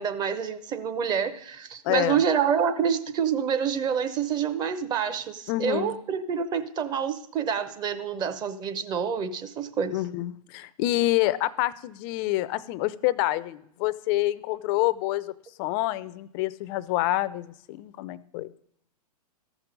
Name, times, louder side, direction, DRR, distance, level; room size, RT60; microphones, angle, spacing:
voice 1, 0.0-10.0, right 7 dB, 20° right, 10 dB, 0.7 m, -27 dB
voice 2, 1.8-2.2 5.5-6.0 9.9-15.3 15.6-18.5, left 16 dB, 30° left, 15 dB, 0.4 m, -27 dB
14.0 x 6.0 x 5.2 m, 0.71 s
hypercardioid pair, 125°, 21 cm